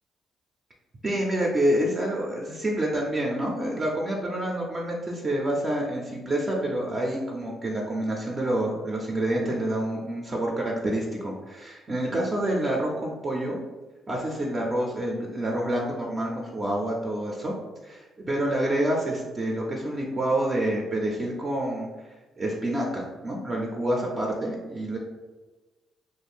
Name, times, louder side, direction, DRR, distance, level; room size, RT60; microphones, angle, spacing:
voice 1, 1.0-13.6 14.1-17.5 17.8-21.9 22.4-25.0, right 1 dB, 35° right, -2 dB, 0.5 m, -27 dB
2.5 x 2.1 x 3.4 m, 1.2 s
cardioid pair, 90°, 0 cm